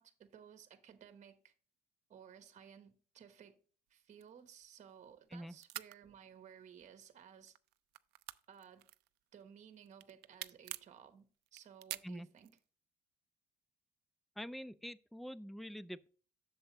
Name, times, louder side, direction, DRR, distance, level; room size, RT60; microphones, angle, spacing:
voice 1, 0.0-1.5 2.1-3.6 3.9-7.5 8.5-8.9 9.3-12.6, right 8 dB, 45° right, 1.1 m, -57 dB
sound 1, 4.1-5.3 5.6-5.9 6.7-7.2 7.5-9.4 9.8-11.0 11.5-12.6, right 18 dB, 80° right, 0.4 m, -47 dB
voice 2, 14.4-16.1, equal, ahead, 0.3 m, -45 dB
7.8 x 6.7 x 2.9 m
cardioid pair, 110°, 17 cm